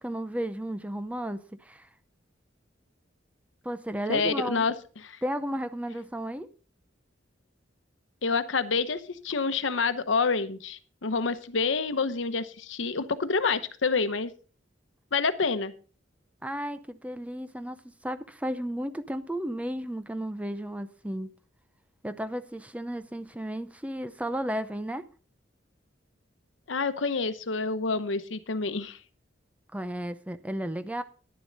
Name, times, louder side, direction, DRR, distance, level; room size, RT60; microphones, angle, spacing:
voice 1, 0.0-1.9 3.6-4.7 5.2-6.5 16.4-17.8 18.0-21.3 22.0-25.0 29.7-31.0, equal, 5° right, 0.6 m, -33 dB
voice 2, 4.1-4.7 5.0-5.2 8.2-14.3 15.1-15.7 26.7-29.0, left 4 dB, 85° left, 0.9 m, -28 dB
10.5 x 10.5 x 4.0 m
head